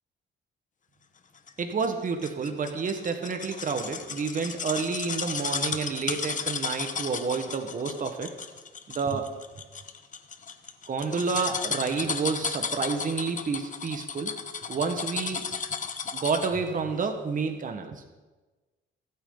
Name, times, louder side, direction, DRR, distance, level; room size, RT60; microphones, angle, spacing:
sound 1, 1.5-16.7 17.0-17.1, left 6 dB, 40° left, 1.1 m, -34 dB
voice 1, 1.6-8.3 8.9-9.3 10.9-14.3 14.7-15.4 16.1-18.0, right 5 dB, 40° right, 5 dB, 1.4 m, -29 dB
25.0 x 8.7 x 3.9 m, 1.2 s
cardioid pair, 90°, 20 cm